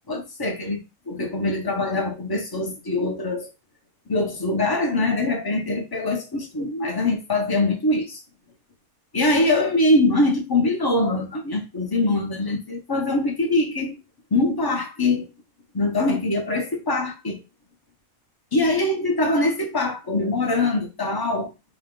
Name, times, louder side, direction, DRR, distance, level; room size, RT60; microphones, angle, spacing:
voice 1, 0.1-3.5 4.1-8.2 9.1-14.0 14.3-15.2 15.7-17.4 18.5-21.5, left 2 dB, 20° left, 0.6 m, -23 dB
3.8 x 2.3 x 3.6 m
omnidirectional pair, 1.5 m